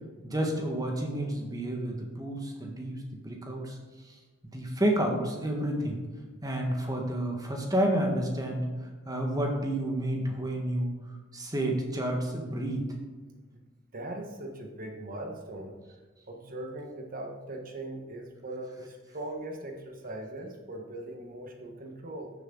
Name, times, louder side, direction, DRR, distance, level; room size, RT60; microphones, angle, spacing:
voice 1, 0.2-3.7 4.5-6.0 6.4-8.6 9.0-10.9 11.3-12.8, right 1 dB, 20° right, 1 dB, 1.7 m, -30 dB
voice 2, 13.9-15.7 16.3-22.3, right 1 dB, 45° right, 2 dB, 1.5 m, -40 dB
13.5 x 7.4 x 3.9 m, 1.3 s
head